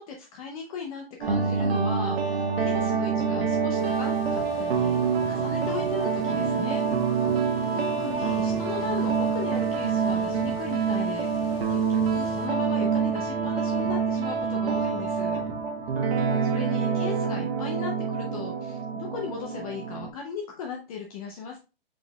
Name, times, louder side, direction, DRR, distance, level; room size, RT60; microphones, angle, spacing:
voice 1, 0.0-6.8 7.1-7.2 7.7-15.4 16.4-21.6, left 5 dB, 35° left, 1 dB, 0.7 m, -37 dB
sound 1, 1.2-20.1, right 5 dB, 75° right, 1.1 m, -26 dB
sound 2, 3.1-17.1, right 3 dB, 25° right, 1.3 m, -46 dB
sound 3, 3.7-12.5, left 4 dB, 75° left, 1.5 m, -45 dB
5.0 x 3.9 x 2.2 m, 0.31 s
hypercardioid pair, 150°, 30 cm